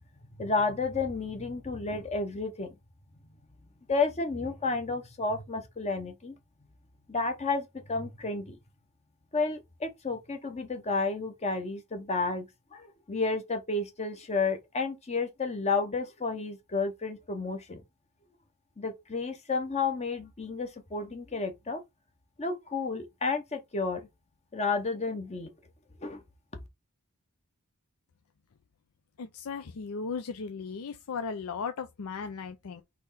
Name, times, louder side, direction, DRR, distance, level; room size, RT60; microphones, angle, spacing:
voice 1, 0.4-2.7 3.9-6.3 7.1-8.6 9.3-12.5 12.7-17.8 18.8-21.8 22.4-24.1 24.5-25.5 26.0-26.2, left 4 dB, 30° left, 0.8 m, -31 dB
voice 2, 29.2-32.8, left 5 dB, 75° left, 0.5 m, -36 dB
4.2 x 3.0 x 4.1 m
head